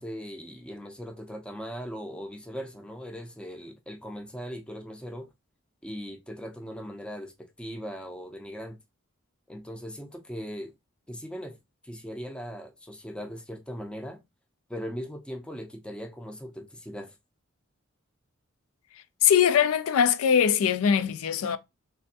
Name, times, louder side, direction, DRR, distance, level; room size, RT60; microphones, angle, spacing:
voice 1, 0.0-5.3 5.8-7.3 7.6-8.8 9.5-10.7 11.1-11.6 11.8-14.2 14.7-17.1, equal, 5° left, 0.5 m, -39 dB
voice 2, 19.2-21.6, left 8 dB, 85° left, 0.4 m, -22 dB
3.4 x 3.3 x 2.7 m
head